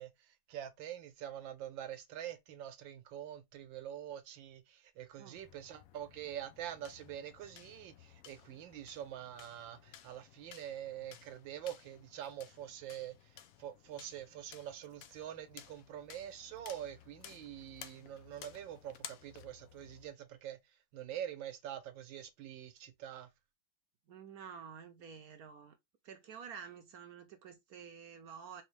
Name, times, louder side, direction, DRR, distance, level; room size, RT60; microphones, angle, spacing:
voice 1, 0.0-20.6 20.9-23.3, right 11 dB, 85° right, 1.5 m, -45 dB
sound 1, 5.4-20.1, left 10 dB, 90° left, 0.7 m, -56 dB
voice 2, 24.1-25.8 26.0-28.6, right 7 dB, 65° right, 0.9 m, -50 dB
4.4 x 2.8 x 3.2 m
omnidirectional pair, 2.0 m